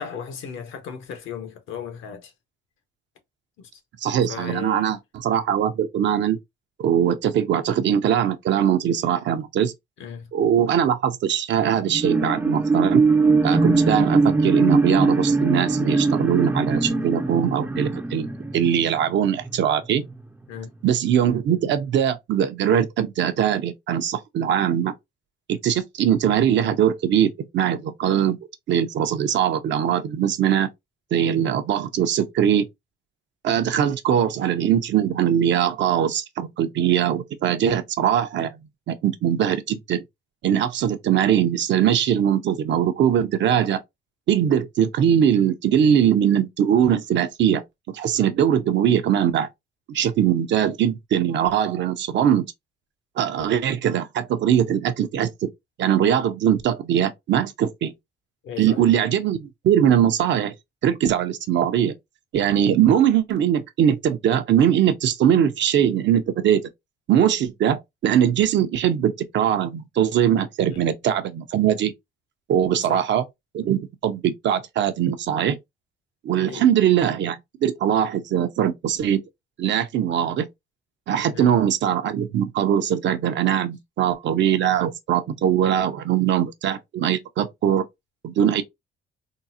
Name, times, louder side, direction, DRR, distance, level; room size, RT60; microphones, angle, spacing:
voice 1, 0.0-2.3 3.6-3.7 4.3-5.0 10.0-10.3 20.5-20.7 58.4-58.8 70.7-70.8 72.8-73.0 76.5-76.7 81.2-81.5, left 7 dB, 80° left, 0.9 m, -36 dB
voice 2, 4.0-6.4 6.8-9.7 10.3-13.0 13.4-18.3 18.5-20.0 20.8-24.9 25.6-28.4 28.7-30.7 31.1-32.7 33.4-40.0 40.4-43.8 44.3-47.6 47.9-49.5 49.9-52.4 53.2-55.5 55.8-57.9 58.6-60.5 60.8-61.9 62.3-66.6 67.1-71.9 72.5-73.2 73.5-75.6 76.2-79.2 79.6-80.5 81.1-87.8 88.2-88.6, right 9 dB, 65° right, 0.6 m, -21 dB
sound 1, 11.8-19.6 20.1-20.2, right 3 dB, 10° right, 0.4 m, -21 dB
3.7 x 2.0 x 2.7 m
cardioid pair, 90°, 20 cm